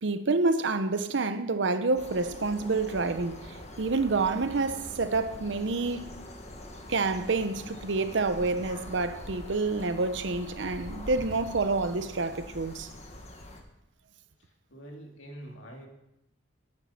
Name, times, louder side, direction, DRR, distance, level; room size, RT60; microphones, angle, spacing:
voice 1, 0.0-6.1 6.9-12.9, right 3 dB, 70° right, 0.7 m, -28 dB
sound 1, 2.0-13.6, left 1 dB, 35° left, 1.5 m, -44 dB
voice 2, 14.4-15.9, right 1 dB, 85° left, 2.6 m, -46 dB
11.0 x 9.0 x 5.7 m
head